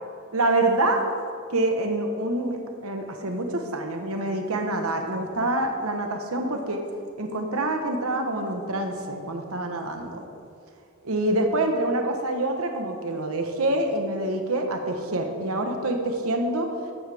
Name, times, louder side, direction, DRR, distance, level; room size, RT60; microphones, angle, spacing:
voice 1, 0.3-1.0 1.5-6.8 7.2-10.3 11.0-16.7, right 2 dB, 75° right, 4 dB, 1.1 m, -26 dB
14.5 x 11.0 x 3.5 m, 2.3 s
head